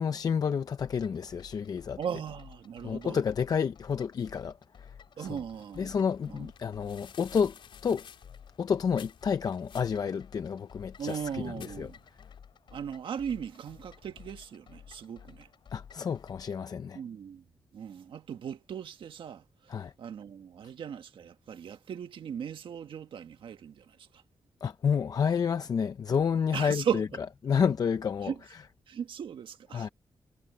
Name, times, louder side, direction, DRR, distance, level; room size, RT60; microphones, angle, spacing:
voice 1, 0.0-2.0 2.8-4.5 4.8-4.9 5.2-5.3 5.8-7.5 7.8-8.0 8.6-11.9 15.7-17.0 19.7-19.9 24.6-27.0 27.4-28.3 29.7-29.9, left 6 dB, 45° left, 0.6 m, -29 dB
sound 1, 0.8-16.6, left 7 dB, 65° left, 4.5 m, -53 dB
voice 2, 2.0-3.2 5.2-6.0 6.3-6.5 11.0-12.0 12.7-15.5 16.9-17.4 17.7-24.2 26.5-27.0 28.2-28.4 28.9-29.9, right 8 dB, 80° right, 1.6 m, -38 dB
sound 2, 5.5-12.4, left 8 dB, 85° left, 3.9 m, -55 dB
wide cardioid pair, 170°, 9 cm